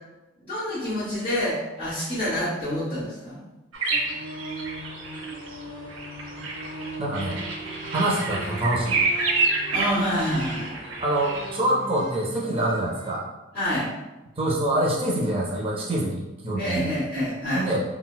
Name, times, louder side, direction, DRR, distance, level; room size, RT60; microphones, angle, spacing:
voice 1, 0.4-3.4 9.7-10.7 13.5-13.9 16.5-17.7, equal, 10° left, -16 dB, 1.5 m, -27 dB
sound 1, 3.7-11.5, right 3 dB, 75° right, 0.6 m, -29 dB
sound 2, 3.9-13.2, right 1 dB, 35° left, 1.2 m, -39 dB
voice 2, 7.0-7.4 7.9-9.0 11.0-13.3 14.4-16.9 17.5-17.8, right 1 dB, 25° right, -3 dB, 0.5 m, -25 dB
4.0 x 2.2 x 2.2 m, 1.0 s
head